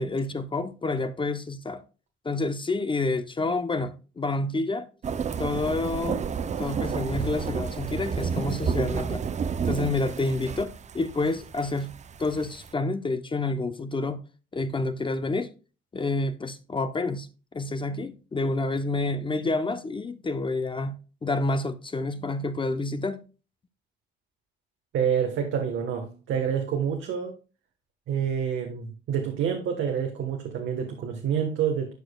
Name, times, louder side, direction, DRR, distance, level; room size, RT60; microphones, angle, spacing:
voice 1, 0.0-1.8 2.2-4.9 5.4-6.3 6.6-9.2 9.6-11.9 12.2-14.2 14.5-15.5 15.9-17.3 17.5-23.2, left 2 dB, 25° left, 0.7 m, -28 dB
sound 1, 5.0-12.7, right 6 dB, 35° right, 0.5 m, -31 dB
voice 2, 24.9-27.3 28.1-31.9, right 8 dB, 80° right, 1.3 m, -27 dB
11.5 x 4.8 x 2.3 m
cardioid pair, 90°, 20 cm